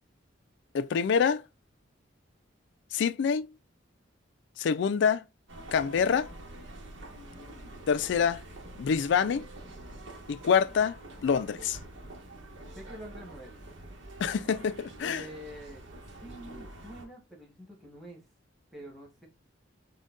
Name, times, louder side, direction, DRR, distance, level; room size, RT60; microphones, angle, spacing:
voice 1, 0.7-1.4 2.9-3.5 4.6-5.2 5.7-6.3 7.9-8.4 8.8-9.4 10.3-11.8 14.2-15.2, left 6 dB, 65° left, 0.3 m, -26 dB
sound 1, 5.5-17.1, right 1 dB, 75° right, 1.1 m, -46 dB
voice 2, 12.7-13.6 15.0-15.8 16.1-18.3 18.7-19.3, equal, ahead, 1.1 m, -46 dB
6.3 x 2.2 x 2.4 m
head